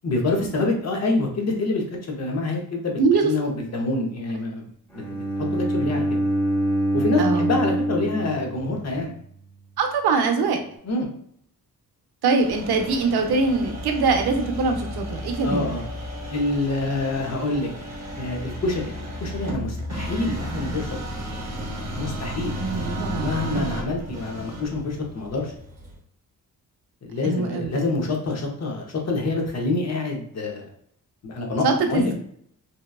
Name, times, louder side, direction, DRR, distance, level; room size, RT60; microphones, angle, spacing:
voice 1, 0.0-4.7 5.1-6.2 6.9-9.1 10.8-11.1 15.4-15.8 16.3-17.7 18.1-18.9 19.2-20.9 22.0-22.5 23.2-25.5 27.0-30.7 31.2-32.1, left 2 dB, 45° left, 1 dB, 0.7 m, -26 dB
voice 2, 3.0-3.3 7.2-7.5 9.8-10.6 12.2-15.7 20.5-20.8 22.6-23.7 27.2-27.7 31.6-32.1, right 4 dB, 85° right, 5 dB, 0.6 m, -23 dB
Bowed string instrument, 4.9-9.0, right 1 dB, 5° left, 0.9 m, -25 dB
sound 1, 12.4-26.0, right 1 dB, 45° right, 0.8 m, -34 dB
sound 2, 13.4-17.2 17.6-22.2, left 2 dB, 10° right, 0.3 m, -37 dB
2.8 x 2.2 x 2.3 m, 0.66 s
cardioid pair, 105°, 37 cm